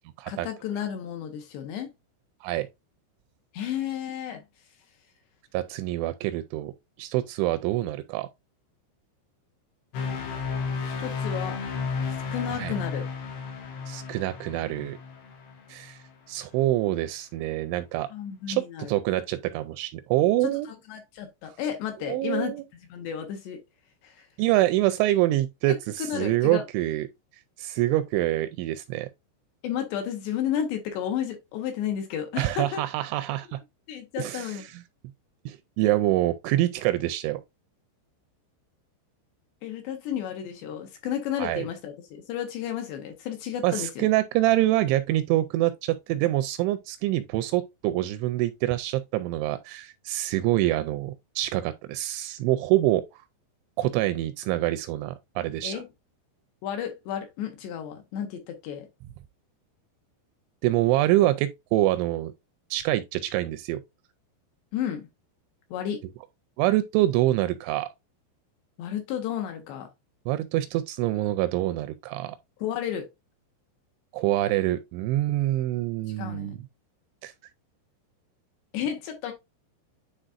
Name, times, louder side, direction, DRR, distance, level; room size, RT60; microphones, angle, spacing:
voice 1, 0.3-1.9 3.5-4.4 10.8-11.6 12.3-13.1 18.1-18.9 20.4-20.5 20.9-22.5 22.9-23.6 24.0-24.3 25.7-25.8 26.1-26.6 29.6-32.8 33.9-34.7 39.6-44.1 55.6-55.9 56.6-58.9 64.7-65.1 65.7-66.0 68.8-69.9 72.6-73.1 76.2-76.5 78.7-79.3, left 9 dB, 75° left, 2.8 m, -32 dB
voice 2, 5.5-6.7 7.0-8.3 12.5-12.8 13.9-15.0 15.7-16.0 16.3-18.1 18.5-20.7 22.0-22.6 24.4-27.1 27.6-29.1 32.4-33.6 34.2-34.8 35.5-37.4 41.4-41.7 43.6-53.2 53.8-55.8 60.6-62.3 62.7-63.8 66.6-67.9 70.3-72.4 74.1-76.6 77.2-77.3, right 15 dB, 85° right, 2.7 m, -26 dB
sound 1, 9.9-16.1, left 5 dB, 90° left, 4.5 m, -33 dB
10.0 x 4.0 x 2.5 m
omnidirectional pair, 5.7 m